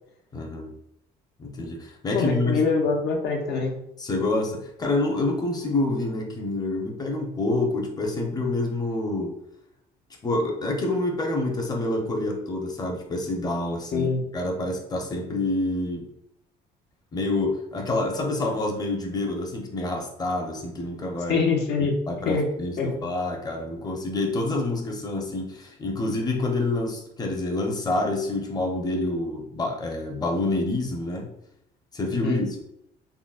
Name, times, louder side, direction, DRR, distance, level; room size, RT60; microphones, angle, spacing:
voice 1, 0.3-0.7 1.4-2.6 4.0-9.3 10.2-16.1 17.1-21.4 21.8-31.3 31.9-32.6, left 2 dB, 25° left, 1 dB, 0.6 m, -27 dB
voice 2, 2.1-3.7 13.9-14.2 21.3-21.9 22.3-22.5 22.8-22.9 32.1-32.4, left 4 dB, 75° left, 0 dB, 0.7 m, -24 dB
3.8 x 2.1 x 2.4 m, 0.77 s
cardioid pair, 110°, 17 cm